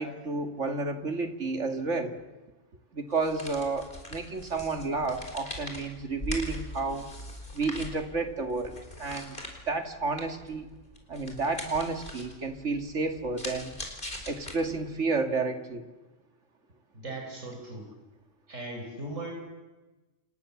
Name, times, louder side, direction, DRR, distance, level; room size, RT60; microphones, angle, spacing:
voice 1, 0.0-2.2 2.9-7.1 7.5-9.4 9.7-10.7 11.1-13.7 14.3-15.9, right 3 dB, 70° right, 6 dB, 2.6 m, -31 dB
sound 1, 3.1-15.0, left 1 dB, 40° left, 4.7 m, -42 dB
voice 2, 16.9-17.9 18.5-19.3, right 2 dB, 85° right, 0 dB, 5.3 m, -38 dB
29.5 x 28.0 x 7.2 m, 1.1 s
omnidirectional pair, 1.3 m